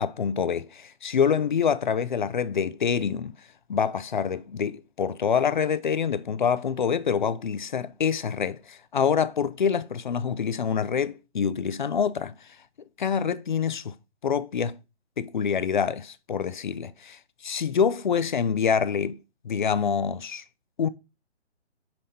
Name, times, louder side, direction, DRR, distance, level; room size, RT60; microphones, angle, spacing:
voice 1, 0.0-3.4 3.7-12.3 13.0-13.9 14.2-14.8 15.2-16.9 17.4-19.2 19.4-20.4 20.8-20.9, left 7 dB, 45° left, 0.6 m, -26 dB
5.9 x 4.9 x 4.2 m
figure-of-eight pair, 145°, 34 cm